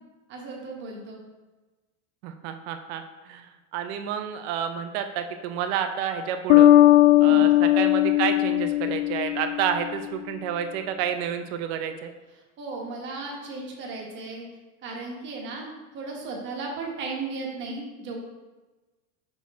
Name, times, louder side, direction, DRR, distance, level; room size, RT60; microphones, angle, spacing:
voice 1, 0.3-1.2 7.2-7.5 12.6-14.4 14.8-18.2, right 3 dB, 30° right, -1 dB, 1.1 m, -35 dB
voice 2, 2.2-6.7 7.2-12.1, right 9 dB, 55° right, 7 dB, 0.5 m, -30 dB
Bass guitar, 6.5-10.0, left 14 dB, 70° left, 0.5 m, -18 dB
5.8 x 4.3 x 4.1 m, 1.2 s
cardioid pair, 170°, 38 cm